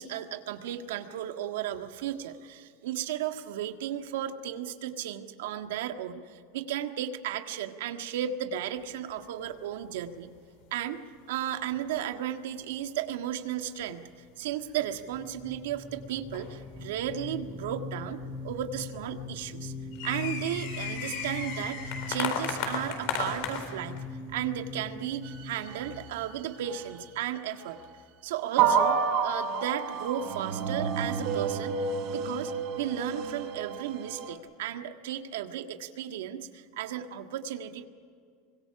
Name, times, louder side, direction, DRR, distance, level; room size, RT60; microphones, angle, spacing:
voice 1, 0.0-10.3 10.7-11.0 11.3-14.1 14.4-19.7 20.0-24.0 24.3-27.8 28.2-37.9, right 10 dB, 80° right, 7 dB, 1.6 m, -34 dB
sound 1, 9.2-9.6 9.8-9.9 10.6-10.7 11.5-12.0 12.6-13.0 13.7-14.5 15.1-15.2 15.5-15.6 16.3-16.9 17.5-17.6 18.2-18.3 18.5-18.9 19.4-24.1 24.6-24.7 25.4-25.8, left 6 dB, 55° left, 4.1 m, -35 dB
sound 2, 14.8-27.2, left 3 dB, 10° left, 2.0 m, -41 dB
sound 3, 25.2-26.2 26.6-26.8 27.6-27.8 28.6-34.3, right 6 dB, 45° right, 5.0 m, -30 dB
25.0 x 22.0 x 6.0 m, 2.2 s
supercardioid pair, 160°, 0 cm